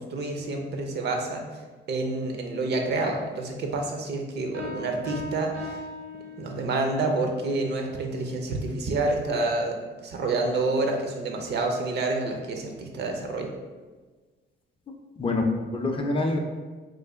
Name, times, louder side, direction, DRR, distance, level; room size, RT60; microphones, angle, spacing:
voice 1, 0.0-1.4 1.9-5.8 6.4-13.5, right 2 dB, 60° right, 3 dB, 0.6 m, -28 dB
sound 1, 4.5-6.9, left 2 dB, 75° right, 1.2 m, -38 dB
voice 2, 14.9-16.4, left 2 dB, 25° left, 2 dB, 0.4 m, -27 dB
3.1 x 2.2 x 3.6 m, 1.4 s
cardioid pair, 90°, 20 cm